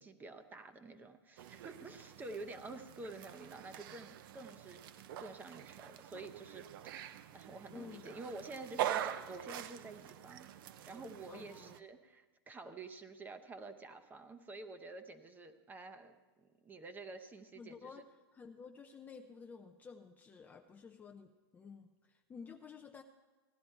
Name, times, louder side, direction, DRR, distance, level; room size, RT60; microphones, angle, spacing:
voice 1, 0.0-4.8 5.2-6.6 7.3-17.9, right 3 dB, 15° right, 9 dB, 0.7 m, -49 dB
sound 1, 1.4-11.8, right 11 dB, 55° right, 0.6 m, -44 dB
voice 2, 7.7-8.2 11.3-11.8 17.6-18.1 18.3-23.0, left 5 dB, 15° left, 5 dB, 0.4 m, -52 dB
16.0 x 11.0 x 4.5 m, 1.3 s
hypercardioid pair, 140°, 13 cm